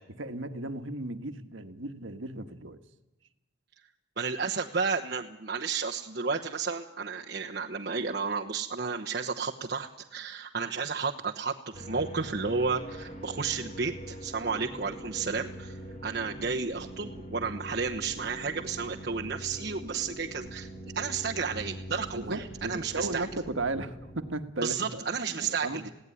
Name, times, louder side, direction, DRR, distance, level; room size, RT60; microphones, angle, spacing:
voice 1, 0.2-2.8 22.2-25.9, right 2 dB, 80° right, 8 dB, 1.5 m, -35 dB
voice 2, 4.2-15.8 16.0-20.7 20.9-23.3 24.6-25.9, right 5 dB, 50° right, -1 dB, 1.0 m, -32 dB
sound 1, 11.7-24.3, right 1 dB, 35° left, 3.5 m, -43 dB
20.5 x 16.5 x 10.0 m, 0.98 s
head